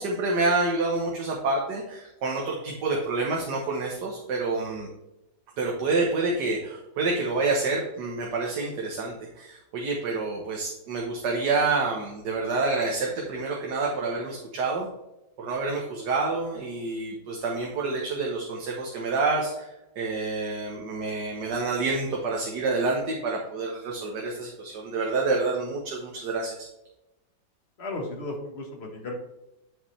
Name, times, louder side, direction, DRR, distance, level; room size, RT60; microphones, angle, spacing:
voice 1, 0.0-4.9 5.6-14.9 15.4-19.7 20.0-26.6, right 3 dB, 65° right, -2 dB, 1.7 m, -28 dB
voice 2, 27.8-29.2, left 2 dB, 35° left, 2 dB, 1.5 m, -34 dB
9.9 x 5.9 x 3.3 m, 0.94 s
omnidirectional pair, 2.1 m